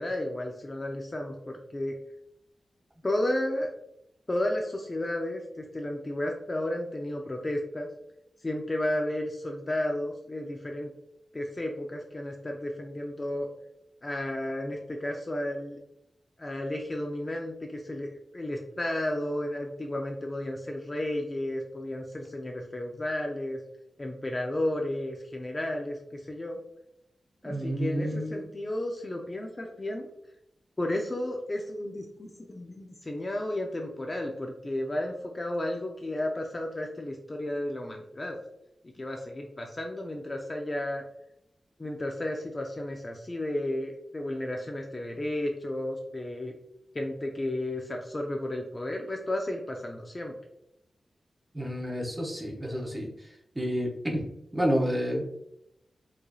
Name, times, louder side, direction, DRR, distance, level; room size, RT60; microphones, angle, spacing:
voice 1, 0.0-2.0 3.0-3.7 4.3-7.9 8.4-10.9 11.3-13.5 14.0-15.8 16.4-18.1 18.3-23.6 24.0-26.6 27.4-30.1 30.8-38.4 39.0-41.0 41.8-46.6 46.9-50.3, left 1 dB, 20° left, 1 dB, 0.4 m, -33 dB
voice 2, 27.4-28.4 51.5-53.1 53.5-54.3 54.5-55.3, equal, 15° right, -1 dB, 0.7 m, -29 dB
4.6 x 2.7 x 2.3 m, 0.80 s
wide cardioid pair, 180°, 0 cm